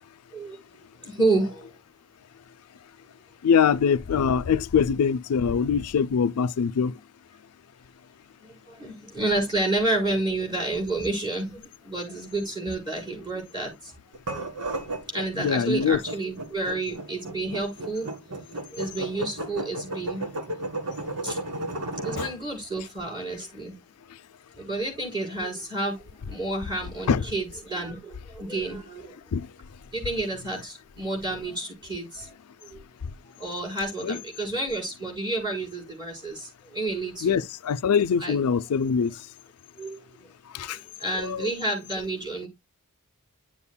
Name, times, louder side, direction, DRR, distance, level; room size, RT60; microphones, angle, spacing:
voice 1, 1.0-1.8 8.4-13.9 14.3-14.5 15.1-18.1 18.7-20.3 21.2-21.4 22.0-23.8 24.6-29.3 29.9-32.3 32.6-32.8 33.4-37.4 37.9-38.4 39.8-42.5, right 2 dB, 20° right, 4.6 m, -30 dB
voice 2, 3.4-7.0 15.4-16.0 22.2-22.3 27.1-27.2 29.3-29.5 34.0-34.2 37.2-39.3 40.5-40.8 41.2-41.5, left 6 dB, 85° left, 0.4 m, -23 dB
sound 1, 14.1-22.3, right 1 dB, 70° right, 1.6 m, -33 dB
10.5 x 7.0 x 2.2 m
head